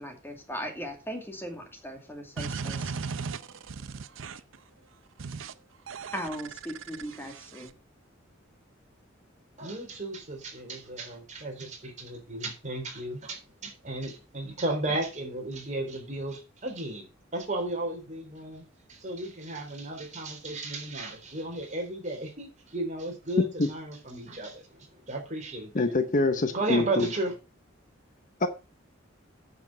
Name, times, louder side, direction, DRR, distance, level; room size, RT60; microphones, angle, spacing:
voice 1, 0.0-2.9 6.1-7.7, equal, 10° left, 2.3 m, -38 dB
sound 1, 2.4-4.6 5.2-5.5 5.9-7.7, right 5 dB, 75° right, 0.7 m, -37 dB
voice 2, 9.6-17.1 17.3-25.9 26.5-27.3, right 2 dB, 40° right, 3.7 m, -34 dB
voice 3, 23.4-23.7 25.7-27.1 28.4-28.5, left 2 dB, 40° left, 0.9 m, -25 dB
9.4 x 7.1 x 5.3 m
head